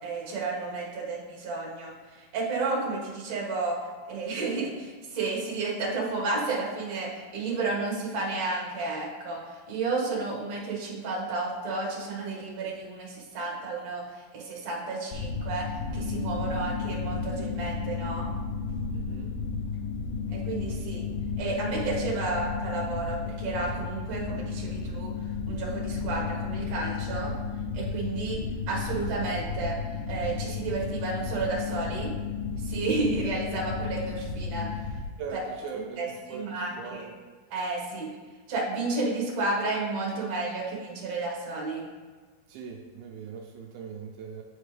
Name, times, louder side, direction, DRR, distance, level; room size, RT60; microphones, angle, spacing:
voice 1, 0.0-3.8 4.1-9.4 9.7-14.0 14.3-15.7 15.9-18.3 20.3-21.0 21.4-25.1 25.5-27.4 27.7-28.4 28.7-29.7 30.1-32.1 32.6-34.7 35.3-35.4 35.7-37.1 37.5-38.1 38.5-41.9, right 3 dB, 55° right, -4 dB, 2.4 m, -32 dB
sound 1, 15.1-35.0, left 5 dB, 80° left, 2.1 m, -33 dB
voice 2, 18.9-19.3 35.2-37.2 42.5-44.4, right 5 dB, 85° right, 1 dB, 2.3 m, -40 dB
9.7 x 4.3 x 3.3 m, 1.5 s
omnidirectional pair, 4.2 m